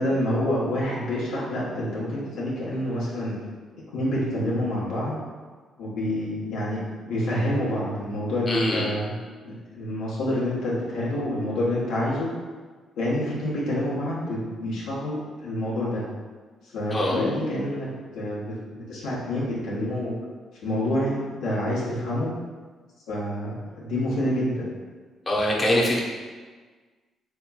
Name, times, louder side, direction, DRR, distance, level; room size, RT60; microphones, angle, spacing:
voice 1, 0.0-3.4 3.7-5.1 5.8-6.8 7.0-9.1 9.4-12.3 13.0-16.0 16.6-17.9 18.1-20.1 20.6-22.4 23.1-24.7, left 1 dB, 90° left, -7 dB, 0.9 m, -27 dB
voice 2, 8.5-8.9 16.9-17.2 25.3-26.0, left 1 dB, 25° left, -4 dB, 0.8 m, -23 dB
3.8 x 2.9 x 2.3 m, 1.4 s
cardioid pair, 90°, 0 cm